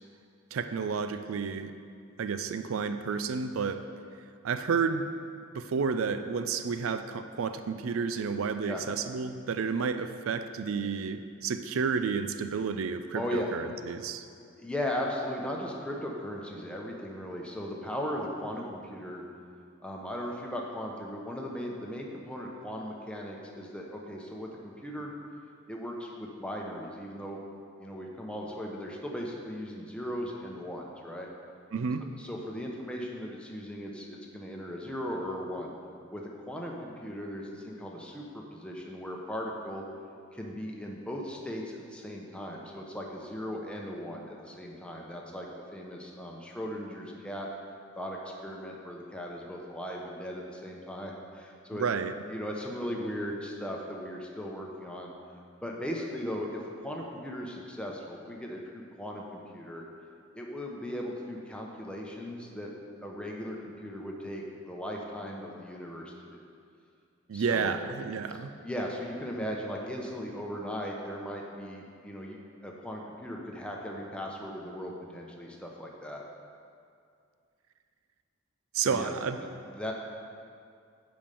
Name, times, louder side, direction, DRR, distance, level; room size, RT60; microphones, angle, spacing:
voice 1, 0.5-1.7 2.2-3.8 4.4-5.1 5.5-14.2 31.7-32.0 51.8-52.1 67.3-68.5 78.7-79.4, right 5 dB, 75° right, 10 dB, 0.4 m, -31 dB
voice 2, 13.1-13.5 14.4-19.2 19.8-25.1 25.7-27.4 27.8-31.3 32.2-35.7 36.1-39.8 40.3-47.5 48.0-51.8 52.3-55.1 55.6-59.9 60.3-62.7 63.0-66.4 67.3-67.7 68.6-76.2 78.7-79.1 79.6-79.9, equal, 5° left, -1 dB, 0.9 m, -38 dB
8.6 x 5.3 x 6.9 m, 2.3 s
head